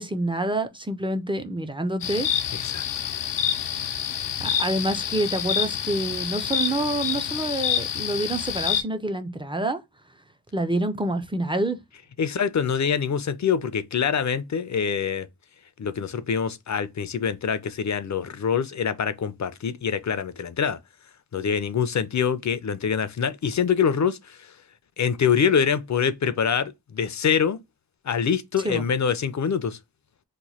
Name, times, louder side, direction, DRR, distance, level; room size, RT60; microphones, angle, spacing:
voice 1, 0.0-2.6 4.4-9.8 10.5-11.8 28.6-28.9, right 1 dB, 15° right, 0.4 m, -27 dB
sound 1, 2.0-8.8, left 9 dB, 90° left, 0.6 m, -27 dB
voice 2, 2.5-3.1 12.2-15.3 15.8-20.8 21.3-24.5 25.0-27.6 28.0-29.8, left 7 dB, 45° left, 0.4 m, -25 dB
3.0 x 2.1 x 4.0 m
wide cardioid pair, 105°, 41 cm